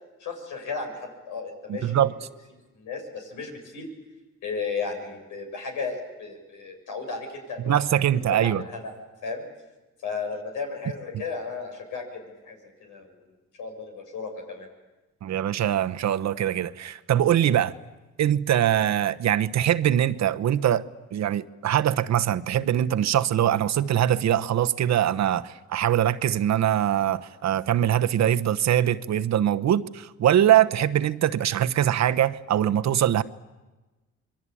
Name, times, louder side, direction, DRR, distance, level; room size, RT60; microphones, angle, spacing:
voice 1, 0.2-2.0 2.7-3.9 4.4-7.8 8.0-8.9 9.2-9.4 10.0-12.2 12.5-13.2 13.6-14.7, left 4 dB, 90° left, 3 dB, 7.3 m, -34 dB
voice 2, 1.7-2.1 7.6-8.6 15.2-17.7 18.2-20.8 21.1-33.2, right 11 dB, 65° right, 12 dB, 1.0 m, -22 dB
26.5 x 22.5 x 8.6 m, 1.2 s
cardioid pair, 90°, 30 cm